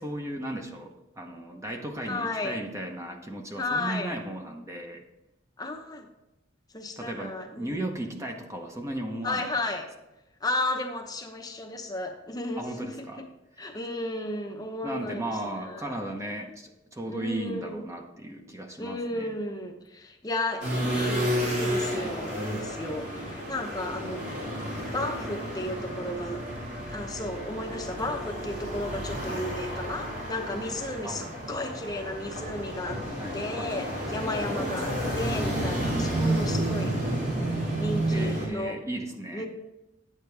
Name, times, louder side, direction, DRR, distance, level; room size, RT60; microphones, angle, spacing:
voice 1, 0.0-5.0 7.0-9.5 12.6-13.2 14.8-19.4 31.0-31.2 33.2-33.7 38.1-39.5, right 1 dB, 15° right, 3 dB, 0.8 m, -36 dB
voice 2, 2.1-2.6 3.6-4.2 5.6-6.1 6.7-7.8 9.2-9.9 10.4-13.3 13.6-16.0 17.1-17.8 18.8-24.2 24.9-26.4 26.9-33.0 33.3-37.0 37.8-38.8 39.3-39.5, left 2 dB, 20° left, 3 dB, 0.8 m, -34 dB
sound 1, 20.6-38.5, right 1 dB, 60° right, 2.9 m, -31 dB
9.6 x 8.7 x 3.3 m, 0.96 s
head